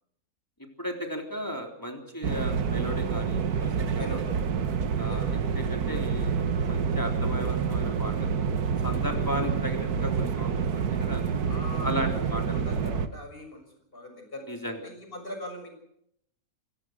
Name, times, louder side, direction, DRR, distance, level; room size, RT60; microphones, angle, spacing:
voice 1, 0.8-4.1 5.0-5.2 5.6-6.3 6.6-8.4 8.8-11.2 11.8-12.7 14.5-14.8, equal, 15° left, 2 dB, 3.5 m, -35 dB
sound 1, 2.2-13.1, right 6 dB, 90° right, 1.8 m, -28 dB
voice 2, 3.9-4.3 5.1-5.3 9.0-9.1 11.5-12.1 12.5-13.7 13.9-15.8, left 1 dB, 35° left, 5 dB, 6.7 m, -41 dB
29.0 x 17.5 x 6.4 m, 0.73 s
omnidirectional pair, 1.6 m